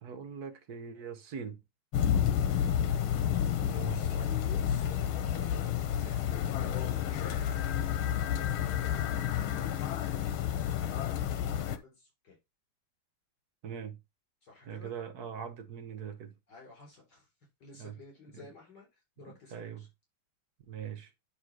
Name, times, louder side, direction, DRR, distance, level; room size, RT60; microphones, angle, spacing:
voice 1, 0.0-1.6 3.6-4.0 13.6-14.0 14.6-16.4 17.8-18.0 18.3-18.5 19.3-19.9 20.7-21.1, right 7 dB, 55° right, 1.4 m, -42 dB
sound 1, 1.9-11.8, left 9 dB, 90° left, 1.7 m, -30 dB
voice 2, 2.7-7.7 8.2-12.4 14.4-14.9 16.5-17.3 17.6-19.9, left 4 dB, 55° left, 4.4 m, -52 dB
9.9 x 3.4 x 4.7 m
omnidirectional pair, 2.2 m